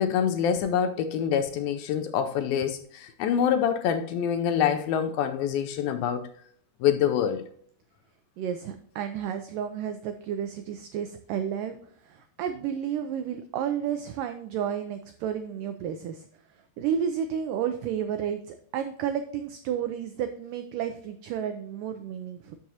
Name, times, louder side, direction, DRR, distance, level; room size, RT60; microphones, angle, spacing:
voice 1, 0.0-6.3 6.8-7.4, left 8 dB, 80° left, 2.2 m, -26 dB
voice 2, 8.4-11.8 12.1-16.3 16.8-22.6, right 8 dB, 90° right, 1.9 m, -31 dB
12.5 x 6.1 x 2.8 m
omnidirectional pair, 4.6 m